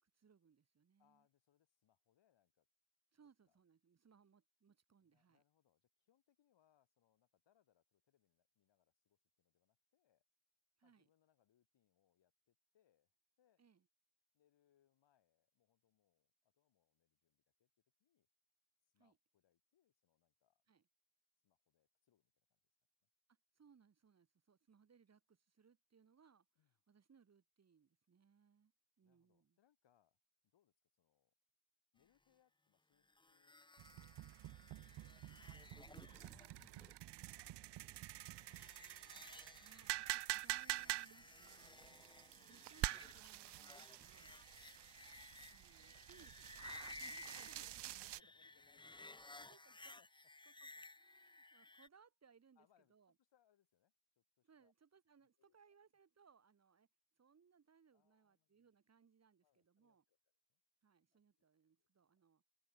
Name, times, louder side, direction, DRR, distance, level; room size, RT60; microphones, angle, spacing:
voice 1, 0.0-1.3 3.1-5.4 10.8-11.1 13.6-13.9 19.0-19.2 20.7-20.9 23.5-26.5 26.9-28.7 29.0-29.6 39.6-41.7 42.5-44.4 45.5-47.9 49.4-50.0 50.5-53.1 54.4-56.9 57.2-60.0 60.8-62.4, right 6 dB, 35° right, 3.8 m, -70 dB
voice 2, 1.0-2.7 3.4-3.6 5.0-10.2 10.8-13.6 14.3-18.3 18.8-20.6 21.4-22.6 23.0-23.1 26.6-26.8 29.0-31.3 31.9-33.6 34.6-36.0 36.2-38.5 41.8-42.2 45.7-46.3 47.5-49.1 49.7-50.1 52.6-54.7 55.2-55.8 57.9-58.7 59.4-60.6 61.1-61.5 61.8-61.9, left 10 dB, 80° left, 7.7 m, -80 dB
sound 1, 33.1-51.9, left 2 dB, 10° left, 1.2 m, -58 dB
sound 2, 33.8-48.2, right 15 dB, 70° right, 0.6 m, -47 dB
open air
wide cardioid pair, 175°, 43 cm